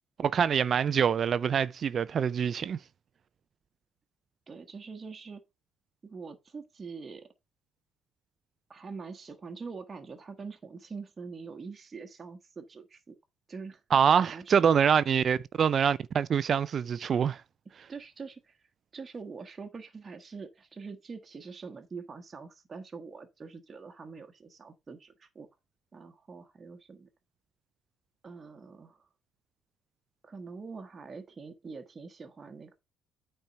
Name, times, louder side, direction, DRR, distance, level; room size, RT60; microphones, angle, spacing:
voice 1, 0.2-2.8 13.9-17.4, right 7 dB, 40° right, 0.4 m, -25 dB
voice 2, 4.5-5.4 6.0-7.3 8.7-13.1 13.5-13.8 14.2-14.6 17.9-18.6 18.9-25.5 25.9-27.1 28.2-29.1 30.2-32.8, right 4 dB, 25° right, 1.3 m, -44 dB
9.0 x 4.4 x 5.3 m
cardioid pair, 140°, 0 cm